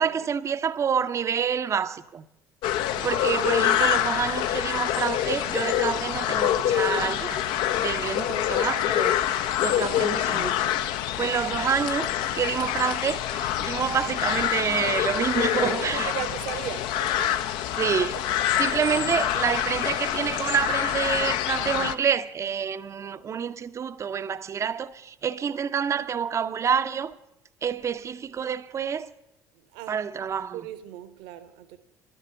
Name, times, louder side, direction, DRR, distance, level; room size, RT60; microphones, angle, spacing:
voice 1, 0.0-2.2 3.0-7.4 7.8-9.2 9.6-16.1 17.8-18.2 18.6-27.1 27.6-29.1 29.9-30.6, right 7 dB, 30° right, 0.6 m, -28 dB
sound 1, 2.6-21.9, left 11 dB, 55° left, 0.6 m, -26 dB
voice 2, 2.9-3.2 15.6-17.5 17.8-17.9 29.5-30.0 30.5-31.8, right 12 dB, 60° right, 1.0 m, -37 dB
11.5 x 11.5 x 7.6 m
figure-of-eight pair, 55°, 10 cm